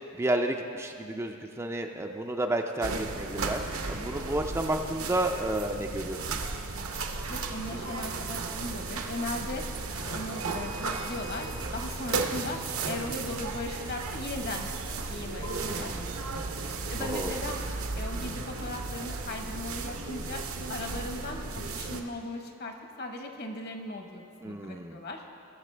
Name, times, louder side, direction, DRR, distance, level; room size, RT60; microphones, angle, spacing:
voice 1, 0.1-3.6 3.9-6.4 15.6-16.1 17.0-17.3 24.4-25.0, right 1 dB, 15° right, 3 dB, 0.4 m, -31 dB
sound 1, 2.8-22.0, right 3 dB, 75° right, 0.9 m, -35 dB
voice 2, 7.2-9.6 10.1-12.6 12.9-14.7 15.1-15.9 16.9-17.6 18.0-20.4 20.7-25.2, left 2 dB, 50° left, 3 dB, 1.1 m, -38 dB
20.0 x 7.1 x 3.3 m, 2.6 s
head